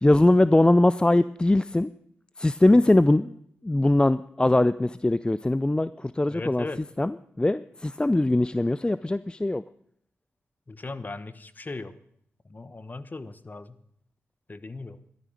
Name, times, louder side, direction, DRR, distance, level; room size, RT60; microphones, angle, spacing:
voice 1, 0.0-1.9 2.4-3.4 3.6-6.7 7.0-9.6, left 2 dB, 20° left, 16 dB, 0.5 m, -21 dB
voice 2, 6.3-6.8 10.7-12.0 12.5-13.8 14.5-15.0, left 3 dB, 35° left, 14 dB, 1.2 m, -38 dB
14.0 x 12.5 x 6.4 m, 0.67 s
supercardioid pair, 45°, 5 cm